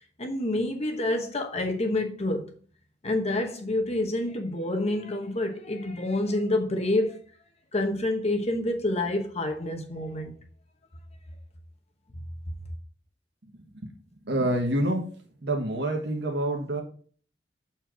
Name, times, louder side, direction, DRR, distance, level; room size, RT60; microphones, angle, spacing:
voice 1, 0.2-2.5 3.0-7.2 7.7-10.3, left 1 dB, 35° left, 1.1 m, -28 dB
voice 2, 13.5-13.9 14.2-15.1 15.4-16.8, right 1 dB, 70° right, 1.4 m, -27 dB
7.8 x 4.4 x 4.8 m
head